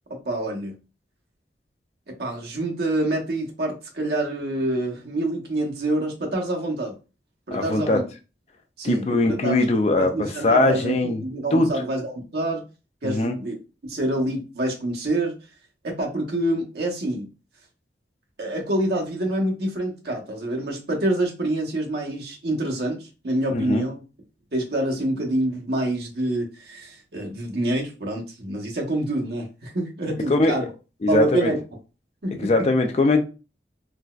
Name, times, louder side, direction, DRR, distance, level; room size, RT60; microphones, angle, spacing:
voice 1, 0.2-0.8 2.1-7.0 7.5-8.0 8.8-9.6 10.0-12.6 13.0-13.5 13.9-15.3 15.8-17.3 18.4-24.0 24.5-30.7 31.1-31.6 32.2-32.7, right 1 dB, 65° right, 0 dB, 0.9 m, -26 dB
voice 2, 7.5-8.0 8.8-11.2 11.5-11.7 13.0-13.4 23.5-23.8 30.3-30.5 31.0-31.5 32.4-33.2, left 2 dB, 35° left, 6 dB, 0.3 m, -21 dB
3.8 x 2.2 x 2.3 m, 0.32 s
head